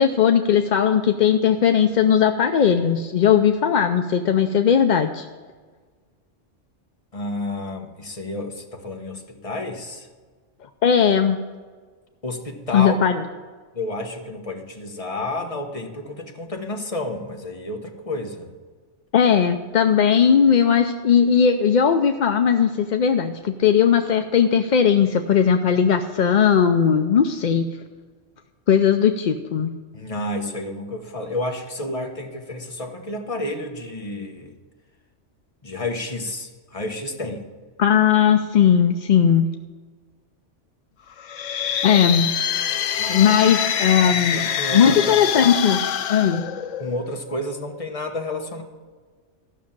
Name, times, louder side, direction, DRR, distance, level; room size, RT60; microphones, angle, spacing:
voice 1, 0.0-5.3 10.8-11.4 12.7-13.2 19.1-27.6 28.7-29.7 37.8-39.5 41.8-42.3 43.1-45.8 46.1-46.4, left 7 dB, 55° left, 6 dB, 0.5 m, -18 dB
voice 2, 7.1-10.1 12.2-13.0 13.7-18.5 29.9-34.5 35.6-37.5 43.0-43.4 44.1-45.3 46.8-48.6, left 2 dB, 30° left, 3 dB, 1.3 m, -30 dB
sound 1, 41.2-47.1, left 8 dB, 85° left, 1.0 m, -25 dB
14.0 x 6.3 x 7.3 m, 1.5 s
omnidirectional pair, 1.3 m